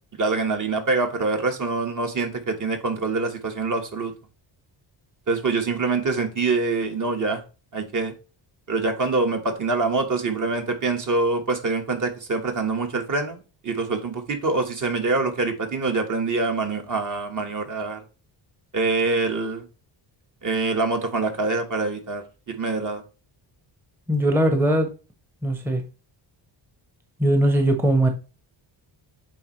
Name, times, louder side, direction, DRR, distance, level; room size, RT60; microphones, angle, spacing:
voice 1, 0.2-4.1 5.3-7.4 7.7-8.1 8.7-18.0 18.7-19.7 20.4-23.0, right 3 dB, 40° right, 1.4 m, -25 dB
voice 2, 24.1-24.9 25.4-25.8 27.2-28.1, right 1 dB, 5° right, 0.8 m, -20 dB
8.5 x 3.5 x 3.1 m
cardioid pair, 105°, 46 cm